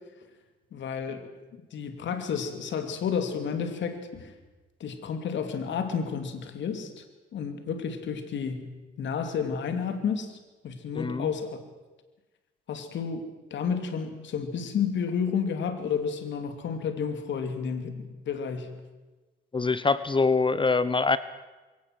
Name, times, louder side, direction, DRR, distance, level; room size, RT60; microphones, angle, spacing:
voice 1, 0.7-1.3 1.7-4.3 4.8-7.0 7.3-8.7 9.0-10.4 10.6-11.6 12.7-13.2 13.5-18.7, left 6 dB, 65° left, 8 dB, 2.7 m, -31 dB
voice 2, 10.9-11.3 19.5-21.2, left 4 dB, 25° left, 15 dB, 0.9 m, -24 dB
23.0 x 17.5 x 7.7 m, 1.2 s
cardioid pair, 90°, 20 cm